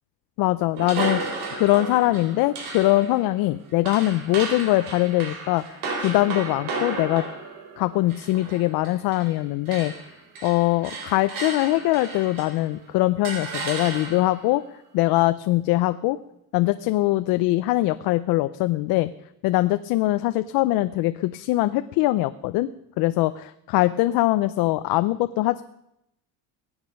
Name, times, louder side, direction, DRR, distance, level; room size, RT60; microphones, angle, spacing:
voice 1, 0.4-5.6 6.0-7.2 7.8-9.9 10.4-14.6 14.9-16.2 16.5-19.1 19.4-22.7 23.0-25.6, left 17 dB, 65° left, 11 dB, 0.6 m, -22 dB
sound 1, 0.7-9.4 9.7-12.7 13.2-14.4, right 3 dB, 80° right, 3.9 m, -34 dB
22.0 x 9.0 x 5.3 m, 0.82 s
cardioid pair, 145°, 38 cm